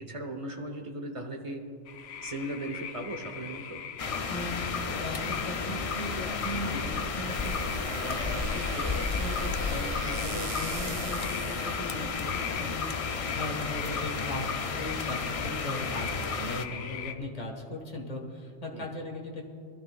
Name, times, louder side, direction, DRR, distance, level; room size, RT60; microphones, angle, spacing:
voice 1, 0.0-1.7 2.2-3.8 18.7-18.9, right 1 dB, 25° right, 4 dB, 1.1 m, -37 dB
sound 1, 1.8-17.1, left 8 dB, 70° left, 1.0 m, -41 dB
sound 2, 4.0-16.7, left 4 dB, 50° left, 0.4 m, -32 dB
voice 2, 4.8-19.4, left 1 dB, 30° left, 1 dB, 1.6 m, -38 dB
sound 3, 7.3-13.3, right 9 dB, 75° right, 0.9 m, -43 dB
23.5 x 12.0 x 2.4 m, 2.5 s
omnidirectional pair, 1.3 m